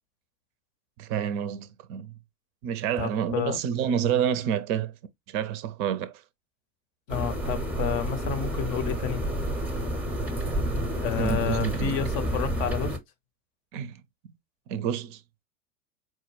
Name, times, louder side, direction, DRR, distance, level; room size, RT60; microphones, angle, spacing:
voice 1, 1.0-2.1 2.6-4.9 5.3-6.2 11.2-12.1 13.7-14.0 14.7-15.2, right 9 dB, 40° right, 0.5 m, -28 dB
voice 2, 3.0-3.6 7.1-9.3 11.0-13.0, left 9 dB, 45° left, 0.7 m, -30 dB
sound 1, 7.1-13.0, right 1 dB, 5° right, 0.7 m, -29 dB
4.5 x 2.2 x 3.1 m
figure-of-eight pair, 90°, 41 cm